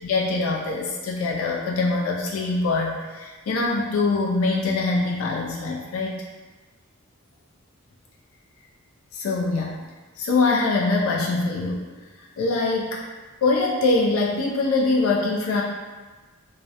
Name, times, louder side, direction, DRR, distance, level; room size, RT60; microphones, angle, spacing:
voice 1, 0.0-6.2 9.1-9.7 10.2-11.8 12.4-13.0 13.4-15.6, left 3 dB, 70° left, -2 dB, 0.3 m, -23 dB
2.4 x 2.0 x 2.7 m, 1.3 s
head